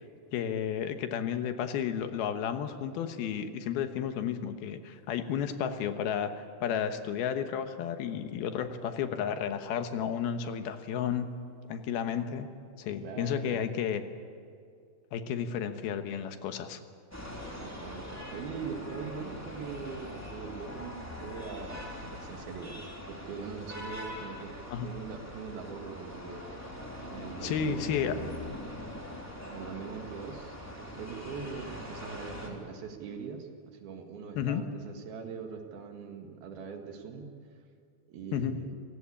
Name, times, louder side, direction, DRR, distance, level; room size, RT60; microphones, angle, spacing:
voice 1, 0.3-11.4 11.7-12.5 12.8-14.0 15.1-16.8 24.7-24.9 27.4-28.2 34.4-34.6 38.3-38.6, left 8 dB, 80° left, 8 dB, 3.1 m, -32 dB
voice 2, 13.0-13.7 17.4-26.5 27.1-28.5 29.5-37.3 38.1-38.8, right 6 dB, 75° right, 4 dB, 3.7 m, -42 dB
sound 1, 17.1-32.5, left 1 dB, 5° left, 2.9 m, -42 dB
29.0 x 17.0 x 8.6 m, 2.3 s
omnidirectional pair, 4.4 m